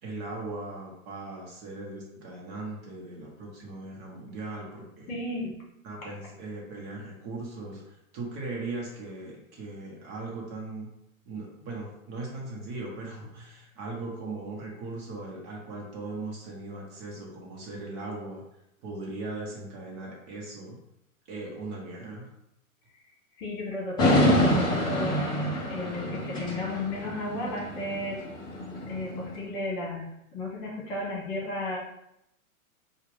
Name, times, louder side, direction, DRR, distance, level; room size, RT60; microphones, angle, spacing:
voice 1, 0.0-5.1 5.8-10.9 11.2-18.4 18.8-20.8 21.3-22.3, right 2 dB, 30° right, -2 dB, 1.0 m, -39 dB
voice 2, 5.1-5.5 23.4-25.3 25.7-28.2 28.9-31.8, left 2 dB, 40° left, -3 dB, 1.5 m, -34 dB
sound 1, 24.0-29.3, left 1 dB, 10° left, 0.5 m, -27 dB
5.7 x 2.4 x 3.3 m, 0.80 s
hypercardioid pair, 140°, 42 cm